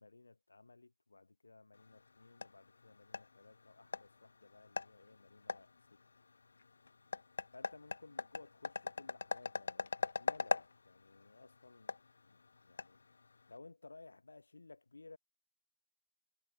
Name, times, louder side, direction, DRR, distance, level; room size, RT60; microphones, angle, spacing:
voice 1, 0.0-6.0 7.5-11.9 12.2-13.0 13.5-15.2, left 3 dB, 75° left, 1.8 m, -58 dB
sound 1, 1.7-13.6, left 4 dB, 60° left, 0.4 m, -43 dB
figure-of-eight pair, 165°, 0 cm